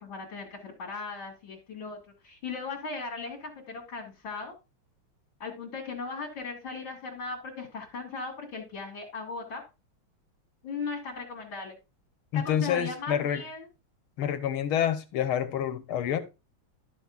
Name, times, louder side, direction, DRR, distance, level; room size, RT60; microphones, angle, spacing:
voice 1, 0.0-4.5 5.4-9.6 10.6-11.8 12.3-13.6, left 4 dB, 65° left, 3.3 m, -38 dB
voice 2, 12.3-13.4 14.2-16.2, left 9 dB, 85° left, 1.9 m, -28 dB
12.5 x 7.1 x 2.4 m
omnidirectional pair, 2.3 m